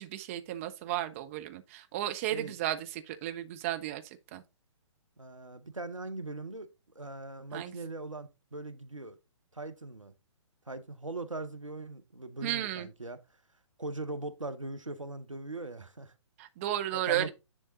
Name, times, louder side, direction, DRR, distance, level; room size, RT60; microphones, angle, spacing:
voice 1, 0.0-4.4 7.5-7.8 12.4-12.9 16.4-17.3, right 13 dB, 25° right, 0.8 m, -34 dB
voice 2, 2.2-2.6 5.2-6.7 6.9-9.2 9.5-10.1 10.7-13.2 13.8-16.1 16.9-17.3, right 2 dB, 85° right, 0.9 m, -40 dB
10.0 x 3.5 x 3.9 m
figure-of-eight pair, 125°, 16 cm